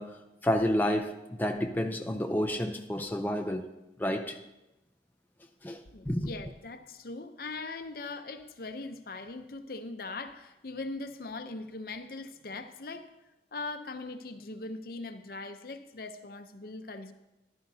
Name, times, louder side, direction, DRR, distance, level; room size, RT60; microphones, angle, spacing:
voice 1, 0.0-3.7 4.0-4.4 5.6-5.8 6.1-6.3, equal, 10° left, 4 dB, 0.5 m, -30 dB
voice 2, 5.9-13.1 13.5-17.1, left 3 dB, 55° left, 9 dB, 0.7 m, -40 dB
13.5 x 12.0 x 2.8 m, 0.96 s
head